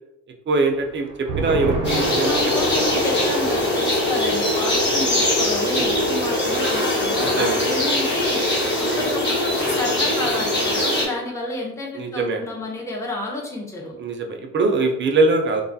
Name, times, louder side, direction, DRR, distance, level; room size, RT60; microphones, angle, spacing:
voice 1, 0.5-2.5 2.8-3.0 5.7-6.2 6.4-6.6 7.2-7.7 8.8-9.1 11.9-12.5 14.0-15.6, right 3 dB, 40° right, 4 dB, 0.5 m, -23 dB
sound 1, 0.7-7.6 7.9-8.0 8.4-8.9, right 4 dB, 90° right, 0.7 m, -33 dB
sound 2, 1.8-11.1, left 1 dB, 35° left, 1.0 m, -21 dB
voice 2, 2.2-8.4 9.0-13.9, left 2 dB, 10° left, -2 dB, 0.6 m, -30 dB
2.6 x 2.3 x 2.6 m, 0.84 s
cardioid pair, 90°, 30 cm